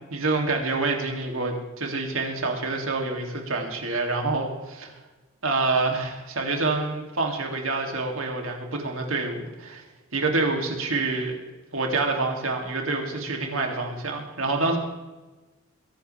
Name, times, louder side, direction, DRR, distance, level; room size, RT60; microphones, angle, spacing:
voice 1, 0.1-4.9 5.4-9.8 10.1-11.4 11.7-14.8, right 3 dB, 70° right, 1 dB, 2.7 m, -27 dB
22.5 x 11.5 x 3.4 m, 1.2 s
head